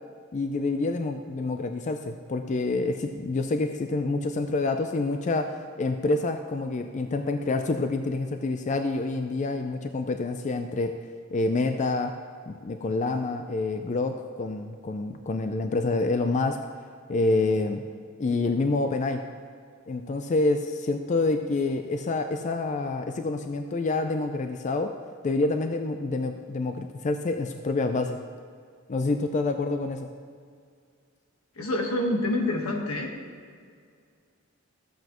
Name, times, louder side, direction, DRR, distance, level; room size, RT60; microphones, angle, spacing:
voice 1, 0.3-5.5 5.8-10.9 11.3-12.1 12.5-16.6 17.1-17.8 18.2-19.2 19.9-24.9 25.2-28.2 28.9-30.1, left 3 dB, 35° left, 6 dB, 0.4 m, -27 dB
voice 2, 31.6-33.1, left 1 dB, 85° left, 2 dB, 1.3 m, -27 dB
14.0 x 7.8 x 3.0 m, 2.1 s
head